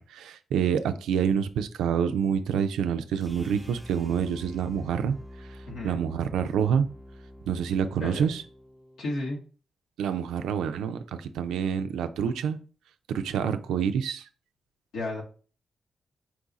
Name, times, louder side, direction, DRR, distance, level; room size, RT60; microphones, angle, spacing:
voice 1, 0.0-5.2 5.8-6.9 7.5-8.4 10.0-12.6 13.1-14.3, right 7 dB, 90° right, 9 dB, 0.3 m, -27 dB
sound 1, 3.2-9.3, equal, 5° left, 0.6 m, -47 dB
voice 2, 5.7-6.0 8.0-8.3 9.0-9.4 14.9-15.2, left 2 dB, 85° left, -2 dB, 1.2 m, -33 dB
4.6 x 2.4 x 3.9 m, 0.39 s
supercardioid pair, 55°, 0 cm